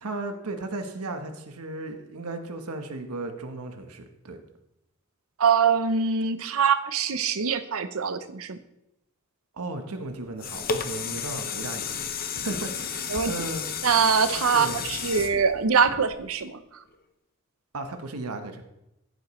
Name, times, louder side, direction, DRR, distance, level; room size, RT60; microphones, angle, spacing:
voice 1, 0.0-4.4 9.5-13.6 14.5-14.9 17.7-18.6, right 2 dB, 90° right, 6 dB, 1.1 m, -35 dB
voice 2, 5.4-8.6 13.1-13.3 13.8-16.6, right 6 dB, 70° right, 11 dB, 0.7 m, -23 dB
sound 1, 10.1-16.4 16.9-17.0, left 6 dB, 40° left, 0.8 m, -33 dB
14.5 x 7.9 x 3.2 m, 0.88 s
head